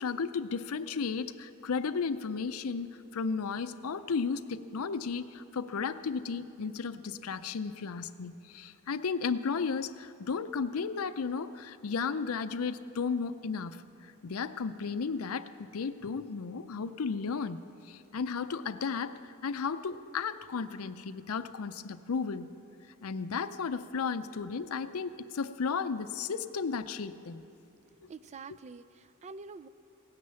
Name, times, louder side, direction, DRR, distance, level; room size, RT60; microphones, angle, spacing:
voice 1, 0.0-22.5 23.0-27.4 28.0-28.1, left 5 dB, 75° left, 12 dB, 0.5 m, -34 dB
voice 2, 28.1-29.7, right 4 dB, 30° right, 14 dB, 0.3 m, -46 dB
17.5 x 9.6 x 6.9 m, 2.7 s
head